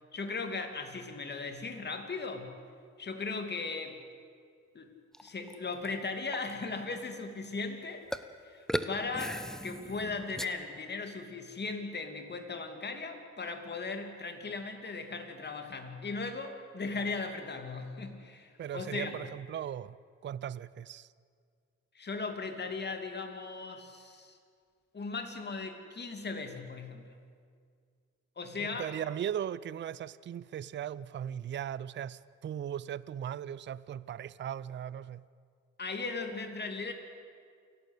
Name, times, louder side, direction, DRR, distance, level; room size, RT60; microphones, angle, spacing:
voice 1, 0.1-2.6 3.0-4.0 4.7-4.9 5.2-8.1 8.4-19.1 21.9-24.4 24.9-27.1 28.4-28.9 35.8-36.9, left 4 dB, 35° left, 2.7 m, -38 dB
sound 1, 5.1-5.9 6.3-6.5 8.1-8.3 8.7-10.5, equal, ahead, 0.9 m, -36 dB
voice 2, 18.6-20.0 20.2-21.1 28.6-35.2, right 9 dB, 40° right, 0.5 m, -38 dB
28.5 x 12.0 x 8.3 m
cardioid pair, 90°, 30 cm